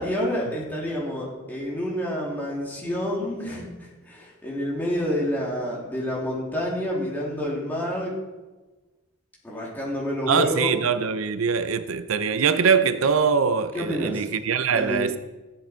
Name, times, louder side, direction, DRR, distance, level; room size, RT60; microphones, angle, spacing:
voice 1, 0.0-8.1 9.4-10.7 13.7-14.3 14.7-15.1, equal, 10° left, 2.9 m, -28 dB
voice 2, 10.3-15.2, right 6 dB, 85° right, 0.6 m, -23 dB
15.5 x 7.6 x 4.5 m
head